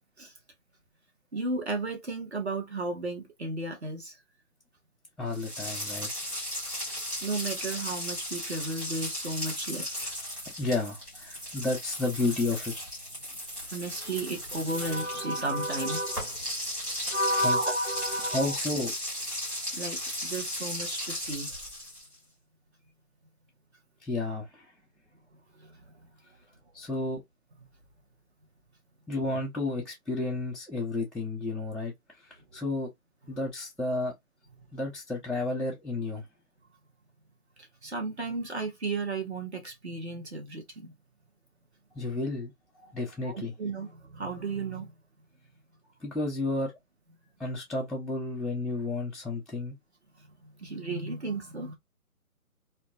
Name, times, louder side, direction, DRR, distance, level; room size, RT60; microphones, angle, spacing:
voice 1, 1.3-4.2 6.9-10.1 13.7-16.3 17.1-18.6 19.7-21.5 25.6-25.8 37.8-40.9 43.2-44.9 50.4-51.8, right 2 dB, 45° right, 0.8 m, -33 dB
voice 2, 5.2-6.1 10.6-12.7 17.4-17.6 18.2-18.9 24.0-24.7 26.7-27.2 29.1-31.9 32.2-32.9 33.3-34.1 34.7-36.3 41.9-43.5 46.0-46.7 47.4-49.7, left 2 dB, ahead, 0.3 m, -32 dB
sound 1, 5.3-22.1, left 1 dB, 15° right, 1.0 m, -36 dB
2.6 x 2.1 x 2.6 m
hypercardioid pair, 165°, 44 cm